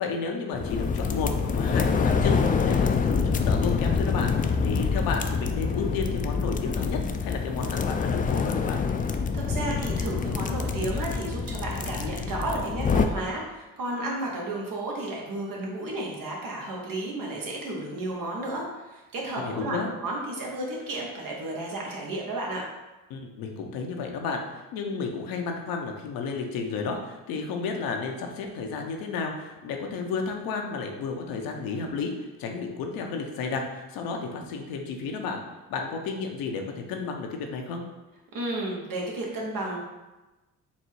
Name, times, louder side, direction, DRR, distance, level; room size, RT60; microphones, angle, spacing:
voice 1, 0.0-8.8 19.4-19.9 23.1-35.4 35.7-37.8, left 4 dB, 80° left, 2 dB, 0.7 m, -32 dB
sound 1, 0.5-13.1, left 5 dB, 25° left, 0.4 m, -26 dB
voice 2, 9.3-22.6 38.3-39.8, right 2 dB, 70° right, -2 dB, 1.3 m, -32 dB
4.1 x 2.3 x 4.5 m, 1.1 s
supercardioid pair, 55°, 35 cm